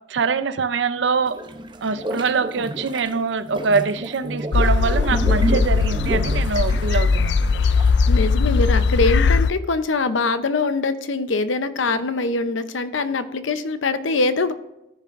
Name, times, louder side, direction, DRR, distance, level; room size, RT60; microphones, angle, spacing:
voice 1, 0.1-1.4 1.8-7.4, right 5 dB, 70° right, 13 dB, 0.6 m, -23 dB
sound 1, 1.3-8.0, right 1 dB, 25° right, 0.7 m, -31 dB
sound 2, 4.5-9.5, left 4 dB, 60° left, 0.3 m, -19 dB
voice 2, 8.1-14.5, left 3 dB, 85° left, 11 dB, 0.7 m, -23 dB
14.0 x 6.7 x 2.6 m, 0.88 s
head